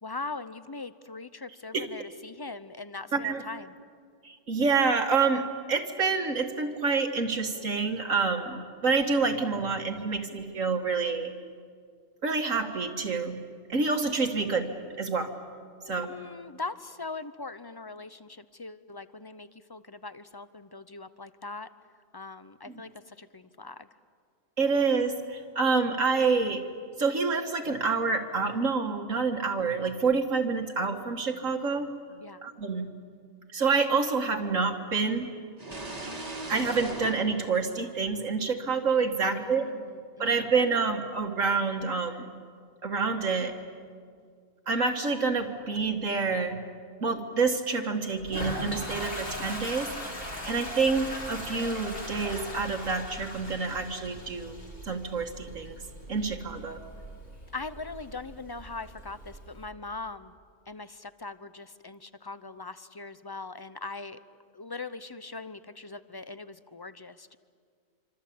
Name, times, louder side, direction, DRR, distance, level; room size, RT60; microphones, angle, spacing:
voice 1, 0.0-3.7 15.8-21.7 22.1-23.9 32.2-32.4 39.2-40.5 57.5-60.3 60.7-64.2 64.5-67.4, left 3 dB, 25° left, 14 dB, 0.5 m, -41 dB
voice 2, 3.1-3.4 4.2-11.3 12.2-13.4 13.7-14.7 15.0-15.3 15.9-16.1 22.7-22.8 24.6-26.6 27.0-31.9 32.4-32.9 33.5-35.3 36.5-39.7 40.2-42.3 42.8-43.6 44.7-46.6 47.0-49.9 50.4-54.5 54.9-55.8 56.1-56.8, right 4 dB, 65° right, 4 dB, 2.0 m, -27 dB
sound 1, 35.6-38.4, right 2 dB, 30° right, 2.0 m, -39 dB
Toilet flush, 48.2-59.6, equal, 40° left, 4.2 m, -40 dB
26.5 x 26.0 x 8.5 m, 2.1 s
omnidirectional pair, 1.4 m